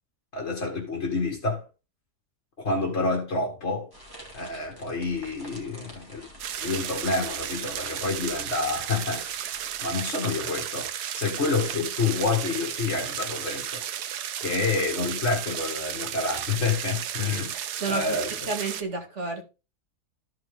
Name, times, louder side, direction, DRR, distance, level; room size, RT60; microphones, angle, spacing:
voice 1, 0.3-1.7 2.6-3.9 4.3-6.2 6.6-9.3 9.8-14.2 14.4-17.5 17.9-18.3, left 4 dB, 45° left, 2.0 m, -28 dB
sound 1, 3.9-9.9, equal, 15° right, 2.7 m, -48 dB
sound 2, 6.4-18.8, right 10 dB, 80° right, 1.3 m, -34 dB
voice 2, 17.7-18.2 18.5-19.4, right 3 dB, 45° right, 2.3 m, -30 dB
13.5 x 4.9 x 3.6 m
omnidirectional pair, 1.7 m